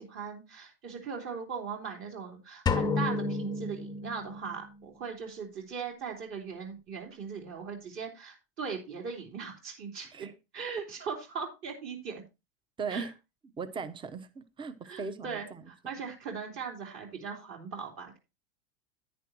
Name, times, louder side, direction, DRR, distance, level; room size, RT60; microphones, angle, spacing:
voice 1, 0.0-10.3 10.5-12.2 12.9-13.1 14.8-18.2, right 6 dB, 40° right, 3.3 m, -39 dB
sound 1, 2.7-4.7, left 4 dB, 15° left, 0.7 m, -31 dB
voice 2, 12.8-13.1 13.6-15.6, right 5 dB, 15° right, 0.9 m, -38 dB
10.0 x 9.7 x 2.9 m
supercardioid pair, 120°, 30 cm